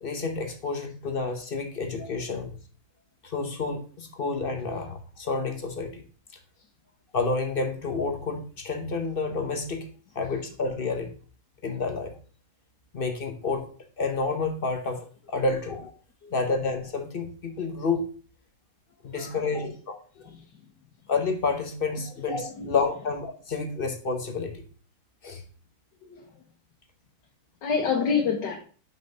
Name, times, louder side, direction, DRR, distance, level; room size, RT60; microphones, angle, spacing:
voice 1, 0.0-2.5 3.2-6.0 7.1-9.9 10.1-11.1 11.6-12.1 12.9-13.7 14.0-15.9 16.3-18.1 19.0-19.9 21.1-24.6 25.2-25.4, left 4 dB, 40° left, 6 dB, 0.9 m, -29 dB
voice 2, 19.0-19.8 20.2-20.4 22.6-22.8 26.0-26.3 27.6-28.6, left 6 dB, 90° left, 0 dB, 1.8 m, -28 dB
5.7 x 5.5 x 5.2 m, 0.41 s
omnidirectional pair, 1.8 m